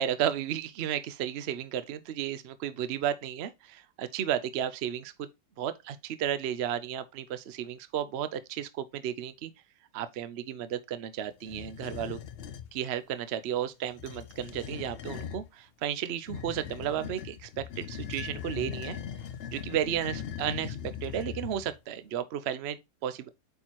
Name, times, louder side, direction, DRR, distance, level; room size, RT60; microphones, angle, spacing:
voice 1, 0.0-5.3 5.6-9.5 9.9-12.2 12.7-19.0 19.5-20.8 21.0-23.3, right 10 dB, 65° right, 0.6 m, -33 dB
sound 1, 11.4-12.7 13.9-15.5 16.3-21.8, left 8 dB, 70° left, 0.5 m, -40 dB
8.5 x 4.5 x 2.9 m
omnidirectional pair, 1.8 m